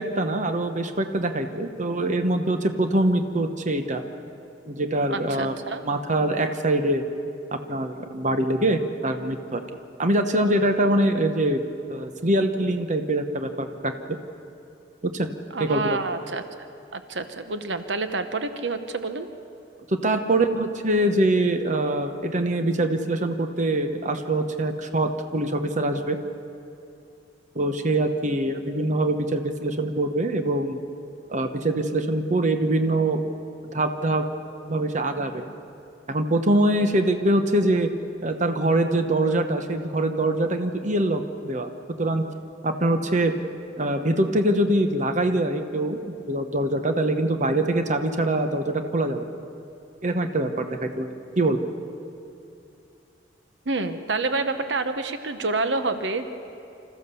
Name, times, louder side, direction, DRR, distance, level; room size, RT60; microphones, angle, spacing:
voice 1, 0.0-4.0 4.7-5.5 5.8-7.0 7.5-9.6 10.0-11.6 11.9-13.9 15.0-15.3 15.6-15.8 19.9-26.2 27.5-30.8 31.3-33.2 33.7-34.2 34.7-35.5 36.1-37.9 38.2-41.7 42.0-42.2 42.6-43.3 43.8-49.2 50.0-51.1 51.4-51.6, right 1 dB, 45° right, 7 dB, 1.1 m, -24 dB
voice 2, 5.1-5.8 15.5-16.4 16.9-19.3 53.7-56.3, right 3 dB, 90° right, 9 dB, 1.1 m, -28 dB
26.0 x 14.5 x 7.0 m, 2.7 s
head